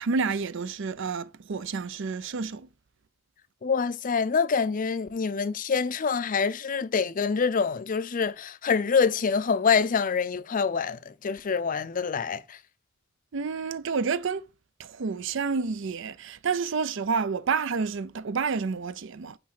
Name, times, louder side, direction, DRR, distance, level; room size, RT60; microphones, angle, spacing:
voice 1, 0.0-2.7 13.3-14.4 14.8-19.4, right 5 dB, 65° right, 0.5 m, -29 dB
voice 2, 3.6-12.6, left 5 dB, 40° left, 0.5 m, -26 dB
6.0 x 5.2 x 4.2 m
head